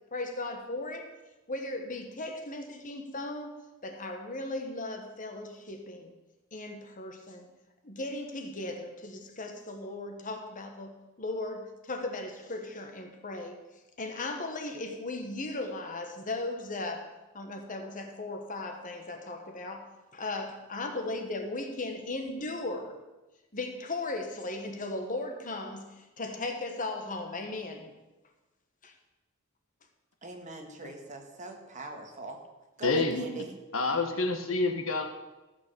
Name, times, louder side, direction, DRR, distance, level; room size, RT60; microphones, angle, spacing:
voice 1, 0.1-1.1 1.5-6.1 6.5-7.5 7.8-13.6 14.0-23.0 23.5-27.9 28.8-28.9, left 2 dB, 40° left, 5 dB, 1.4 m, -37 dB
voice 2, 30.2-32.4 32.8-33.5, right 2 dB, 35° right, 3 dB, 1.7 m, -42 dB
voice 3, 32.8-33.3 33.7-35.0, left 3 dB, 70° left, 5 dB, 1.4 m, -28 dB
14.5 x 6.2 x 6.9 m, 1.1 s
head